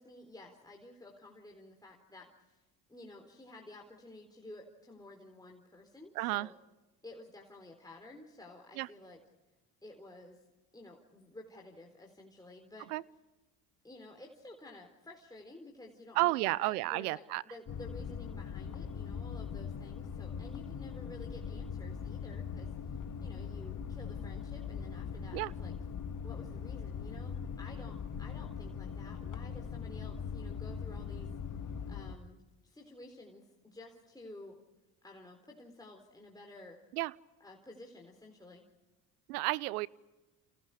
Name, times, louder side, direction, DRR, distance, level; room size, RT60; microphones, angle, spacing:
voice 1, 0.0-2.6 2.9-6.5 7.0-9.2 9.8-10.4 10.7-12.9 13.8-25.7 26.2-31.3 31.9-34.6 35.0-36.8 37.4-38.6, left 2 dB, 10° left, 1 dB, 4.0 m, -52 dB
voice 2, 6.2-6.5 8.8-8.9 12.9-13.0 16.2-17.4 25.3-25.5 36.9-37.1 39.3-39.9, right 19 dB, 85° right, 23 dB, 0.7 m, -31 dB
sound 1, 17.7-32.1, left 6 dB, 45° left, 2.3 m, -41 dB
29.0 x 29.0 x 5.0 m, 1.1 s
hypercardioid pair, 65°, 44 cm